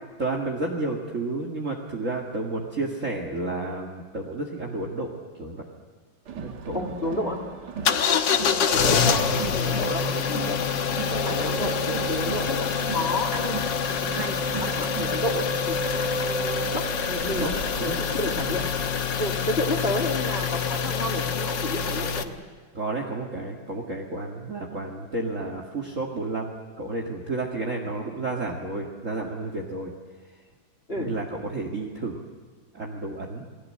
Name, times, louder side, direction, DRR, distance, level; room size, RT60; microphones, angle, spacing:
voice 1, 0.2-5.7 6.3-6.8 7.8-7.9 17.3-17.5 17.8-18.0 22.7-29.9 30.9-32.2 32.7-33.5, right 2 dB, 40° right, 0 dB, 2.4 m, -31 dB
Crowd, 6.3-19.8, right 7 dB, 60° right, 1.8 m, -39 dB
voice 2, 6.7-7.4 8.6-10.7 11.1-13.7 14.0-17.5 17.8-18.6 19.2-22.3 30.9-31.1, left 1 dB, 30° left, 2 dB, 2.9 m, -31 dB
sound 1, 7.9-22.2, left 6 dB, 65° left, 1.9 m, -26 dB
29.0 x 20.0 x 7.7 m, 1.5 s
omnidirectional pair, 2.2 m